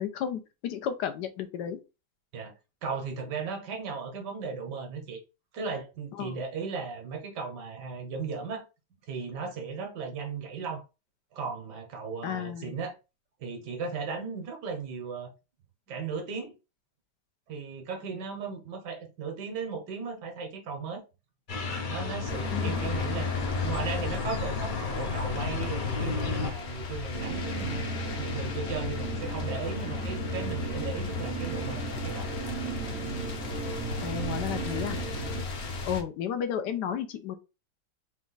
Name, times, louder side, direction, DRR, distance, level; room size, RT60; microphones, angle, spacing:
voice 1, 0.0-1.8 6.2-6.4 12.2-12.8 22.5-22.7 34.0-35.0 35.9-37.4, left 8 dB, 85° left, 1.3 m, -33 dB
voice 2, 2.8-5.2 5.5-8.7 9.1-10.8 11.3-12.9 13.4-15.3 15.9-16.6 17.5-21.0 21.9-23.3 23.6-27.8 28.1-32.3 35.7-35.8, right 5 dB, 80° right, 1.6 m, -36 dB
sound 1, 21.5-26.5, left 4 dB, 65° left, 0.4 m, -31 dB
sound 2, 22.3-36.0, left 4 dB, 50° left, 0.9 m, -36 dB
sound 3, 27.1-35.4, right 5 dB, 60° right, 0.9 m, -36 dB
4.1 x 2.3 x 3.9 m
omnidirectional pair, 1.8 m